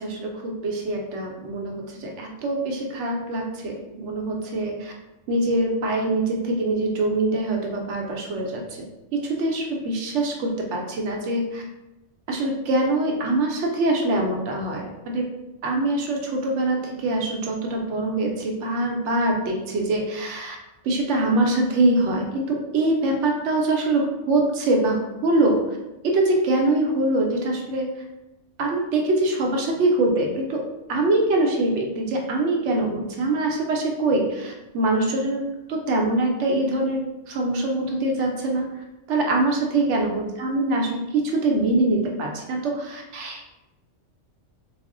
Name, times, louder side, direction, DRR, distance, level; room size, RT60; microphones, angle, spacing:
voice 1, 0.0-4.9 5.3-8.6 9.1-11.6 12.3-15.2 15.6-20.6 20.8-25.6 26.0-27.8 28.6-30.6 30.9-35.4 35.7-38.7 39.1-43.5, right 2 dB, 70° right, 1 dB, 0.9 m, -24 dB
4.0 x 2.0 x 2.5 m, 0.98 s
omnidirectional pair, 1.3 m